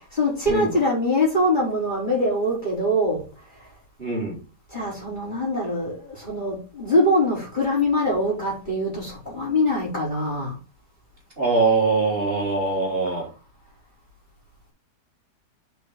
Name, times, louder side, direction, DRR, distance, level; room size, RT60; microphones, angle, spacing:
voice 1, 0.1-3.3 4.7-10.5, left 1 dB, 25° left, 4.4 m, -23 dB
voice 2, 4.0-4.4 11.4-13.3, right 3 dB, 30° right, 3.5 m, -22 dB
6.0 x 5.7 x 4.9 m
omnidirectional pair, 1.9 m